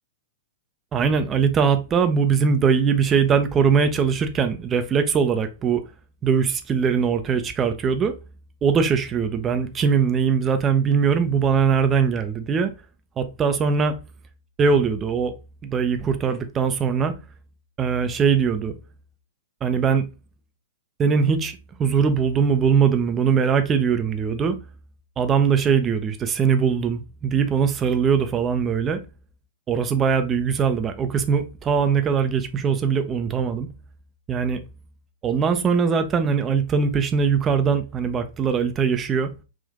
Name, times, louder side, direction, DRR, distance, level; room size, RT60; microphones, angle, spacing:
voice 1, 0.9-5.8 6.2-8.1 8.6-12.7 13.2-14.0 14.6-15.3 15.6-17.1 17.8-18.7 19.6-20.0 21.0-24.6 25.2-29.0 29.7-33.7 34.3-34.6 35.2-39.3, right 6 dB, 25° right, 0.5 m, -21 dB
3.7 x 2.5 x 3.5 m
figure-of-eight pair, 105°, 0 cm